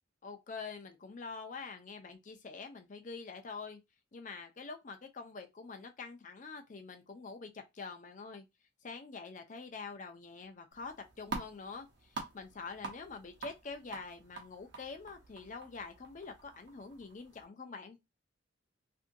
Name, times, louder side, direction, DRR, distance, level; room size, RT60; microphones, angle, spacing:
voice 1, 0.2-3.8 4.1-8.5 8.8-18.0, left 4 dB, 40° left, 0.5 m, -46 dB
sound 1, 10.7-17.4, right 4 dB, 55° right, 0.9 m, -47 dB
2.7 x 2.6 x 2.6 m
head